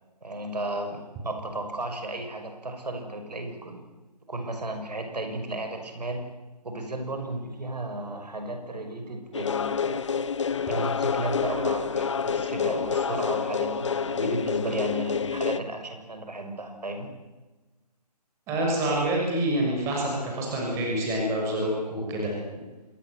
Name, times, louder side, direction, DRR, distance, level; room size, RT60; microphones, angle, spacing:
voice 1, 0.2-3.8 4.3-6.2 6.6-10.2 10.7-17.1, right 1 dB, 75° right, 5 dB, 6.6 m, -34 dB
sound 1, 9.3-15.6, left 6 dB, 45° left, 0.9 m, -28 dB
voice 2, 18.5-22.3, right 1 dB, 15° right, -1 dB, 6.6 m, -27 dB
27.0 x 20.0 x 8.1 m, 1.2 s
figure-of-eight pair, 155°, 21 cm